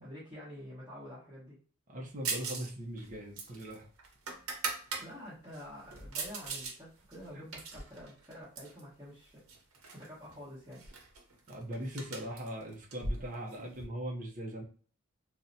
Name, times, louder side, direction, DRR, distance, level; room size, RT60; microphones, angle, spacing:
voice 1, 0.0-1.6 5.0-9.4 9.8-10.8, equal, 10° right, -11 dB, 1.1 m, -48 dB
voice 2, 1.9-3.9 7.3-7.4 11.5-14.6, right 1 dB, 40° right, -1 dB, 0.6 m, -40 dB
sound 1, 2.2-2.7 3.0-5.0 5.5-6.7 7.1-8.8 9.5-10.1 10.3-10.4 10.7-13.8, right 3 dB, 85° right, 0.8 m, -39 dB
3.9 x 2.1 x 2.6 m, 0.42 s
head